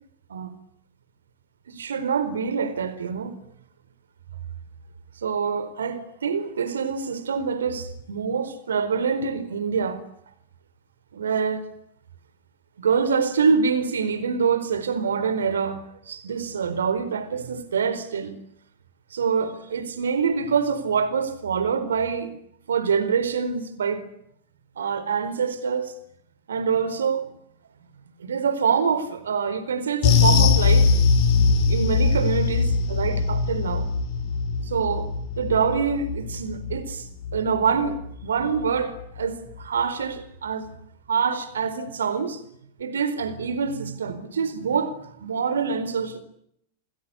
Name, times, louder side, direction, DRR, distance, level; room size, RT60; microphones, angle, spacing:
voice 1, 1.7-3.4 5.2-10.0 11.1-11.6 12.8-18.3 19.1-22.3 22.7-24.0 24.8-25.9 26.5-27.3 28.2-30.9 31.7-33.9 34.7-35.1 35.4-37.1 37.3-40.7 41.1-42.4 42.8-46.2, right 6 dB, 70° right, 4.3 m, -25 dB
sound 1, 30.0-38.7 39.0-39.2 39.6-39.7, left 5 dB, 45° left, 5.8 m, -22 dB
28.5 x 21.0 x 8.6 m
figure-of-eight pair, 90°, 0 cm